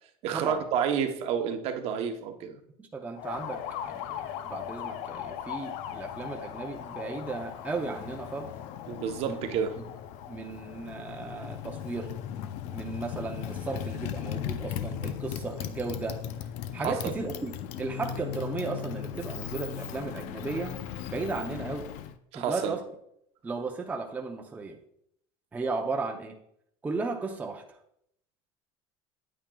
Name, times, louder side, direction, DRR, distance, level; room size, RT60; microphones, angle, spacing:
voice 1, 0.2-2.6 8.9-9.8 16.8-17.1 22.3-22.7, right 7 dB, 55° right, 6 dB, 0.9 m, -30 dB
voice 2, 2.8-8.5 9.3-9.4 9.8-9.9 10.3-12.1 12.7-16.2 16.7-17.5 17.8-20.8 21.1-21.9 22.3-22.8 23.4-24.8 25.5-26.4 26.8-27.8, right 3 dB, 10° right, 2 dB, 0.6 m, -35 dB
Motorcycle, 3.2-22.1, left 10 dB, 65° left, 0.5 m, -37 dB
8.8 x 8.5 x 2.3 m, 0.74 s
cardioid pair, 140°, 13 cm